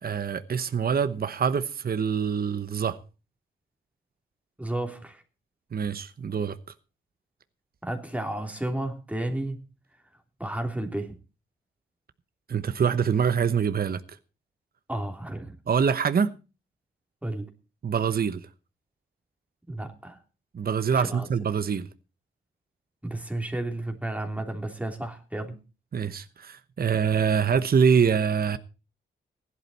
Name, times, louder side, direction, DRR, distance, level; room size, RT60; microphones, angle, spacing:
voice 1, 0.0-3.0 5.7-6.6 12.5-14.0 15.7-16.3 17.8-18.5 20.5-21.9 25.9-28.6, right 6 dB, 50° right, 1.0 m, -25 dB
voice 2, 4.6-5.2 7.8-9.6 10.4-11.1 14.9-15.5 17.2-17.5 19.7-20.2 20.9-21.3 23.0-25.6, right 1 dB, 5° right, 3.2 m, -32 dB
16.0 x 11.5 x 4.2 m
cardioid pair, 65°, 20 cm